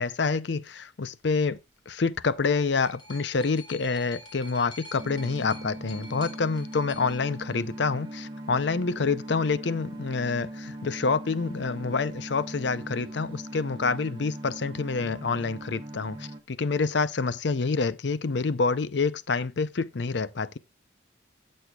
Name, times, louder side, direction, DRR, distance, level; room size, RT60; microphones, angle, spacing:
voice 1, 0.0-1.6 1.9-20.6, left 4 dB, 65° left, 0.6 m, -27 dB
sound 1, 2.1-8.1 9.0-9.1, left 2 dB, 25° left, 2.8 m, -48 dB
sound 2, 5.0-16.4, right 1 dB, 20° right, 1.2 m, -40 dB
17.0 x 6.4 x 2.3 m
head